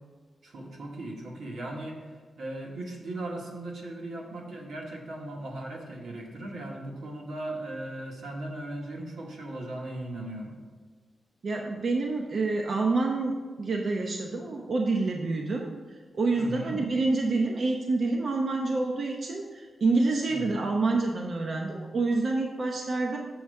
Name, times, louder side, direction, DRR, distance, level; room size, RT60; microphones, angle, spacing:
voice 1, 0.4-10.6 16.3-16.8 20.3-20.6, right 1 dB, 90° right, 0 dB, 1.4 m, -38 dB
voice 2, 11.4-15.7 16.1-23.2, right 3 dB, 55° right, 1 dB, 0.7 m, -27 dB
7.1 x 4.6 x 6.5 m, 1.4 s
wide cardioid pair, 115°, 0 cm